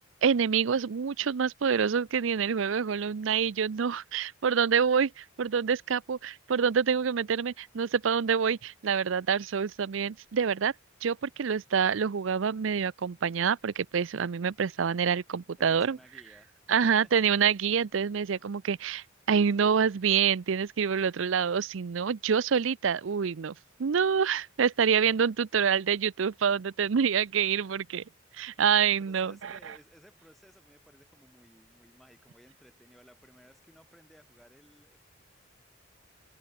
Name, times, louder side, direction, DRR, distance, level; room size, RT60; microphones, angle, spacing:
voice 1, 0.2-10.7 11.0-16.0 16.7-23.5 23.8-28.0 28.4-29.6, right 7 dB, 70° right, 0.5 m, -27 dB
voice 2, 15.6-16.6 29.0-35.0, equal, ahead, 5.2 m, -58 dB
head